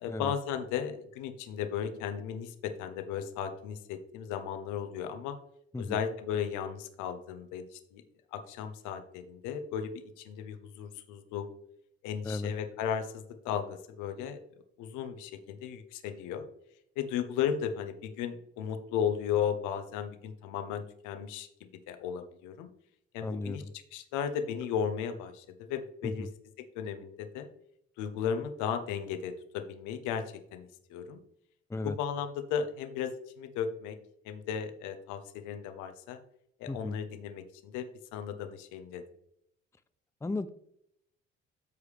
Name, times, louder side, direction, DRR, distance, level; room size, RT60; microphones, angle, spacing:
voice 1, 0.0-5.4 5.8-8.0 8.3-11.5 12.0-14.4 14.8-16.5 17.0-22.7 23.1-23.6 23.9-26.3 26.6-27.5 28.0-30.2 30.5-31.2 31.8-34.0 34.2-36.2 36.6-37.9 38.1-39.0, left 8 dB, 70° left, 8 dB, 1.1 m, -35 dB
voice 2, 23.2-23.7 26.2-26.3 31.7-32.0 36.7-37.0 40.2-40.5, left 2 dB, 10° left, 11 dB, 0.6 m, -35 dB
13.5 x 4.8 x 3.3 m, 0.74 s
hypercardioid pair, 55°, 32 cm